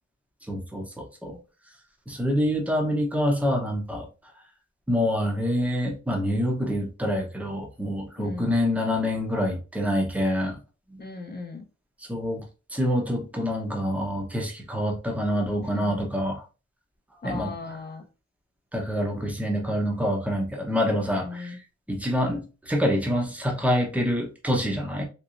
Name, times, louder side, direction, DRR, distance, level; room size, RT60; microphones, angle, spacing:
voice 1, 0.5-1.4 2.1-4.1 4.9-10.6 10.9-11.0 12.1-12.4 12.7-16.4 17.2-17.5 18.7-21.5 21.9-25.0, equal, 5° right, 0.8 m, -26 dB
voice 2, 8.2-8.5 11.0-11.7 15.7-16.1 17.2-18.1 21.2-21.6, left 4 dB, 35° left, 0.7 m, -37 dB
3.2 x 3.1 x 2.5 m
wide cardioid pair, 145°, 29 cm